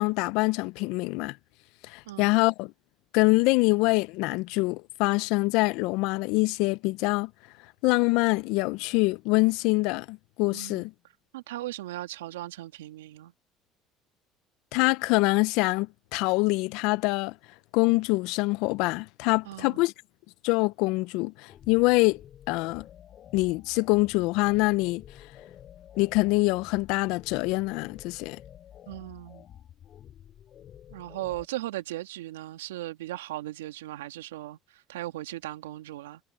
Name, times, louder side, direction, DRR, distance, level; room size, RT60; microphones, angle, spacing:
voice 1, 0.0-1.4 1.9-2.7 3.1-7.3 7.8-10.9 14.7-17.3 17.7-19.9 20.4-22.2 22.5-22.9 23.3-25.0 26.0-28.4, left 23 dB, 75° left, 0.7 m, -25 dB
voice 2, 10.5-10.8 11.3-13.3 19.5-19.8 28.9-29.4 30.9-34.6 34.9-36.2, right 15 dB, 90° right, 2.5 m, -37 dB
sound 1, 21.5-31.5, left 10 dB, 55° left, 3.3 m, -50 dB
hypercardioid pair, 70°, 0 cm